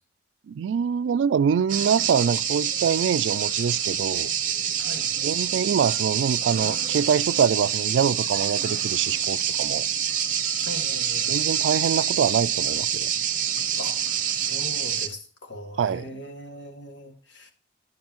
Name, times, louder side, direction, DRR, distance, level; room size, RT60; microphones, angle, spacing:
voice 1, 0.5-4.3 5.2-9.9 11.3-13.1 15.8-16.2, right 7 dB, 90° right, 0.3 m, -24 dB
sound 1, 1.7-15.1, right 9 dB, 45° right, 0.9 m, -26 dB
voice 2, 4.8-5.1 10.6-11.3 13.8-17.5, left 1 dB, 80° left, 1.9 m, -40 dB
10.5 x 7.3 x 2.9 m
head